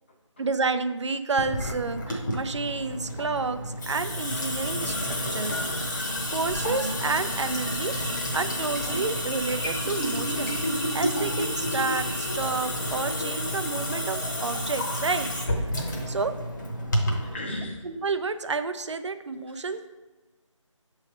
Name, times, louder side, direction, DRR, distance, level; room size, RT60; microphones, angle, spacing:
voice 1, 0.4-5.5 5.9-7.9 8.3-15.3 15.5-15.6 16.1-16.3 17.8-19.9, right 4 dB, 60° right, 10 dB, 0.5 m, -30 dB
Water tap faucet / Sink (filling or washing) / Drip, 1.4-17.3, equal, 35° left, 0.8 m, -30 dB
voice 2, 16.7-17.9 19.5-19.8, left 1 dB, 20° left, 0 dB, 0.5 m, -39 dB
6.1 x 3.2 x 5.2 m, 1.2 s
figure-of-eight pair, 160°, 17 cm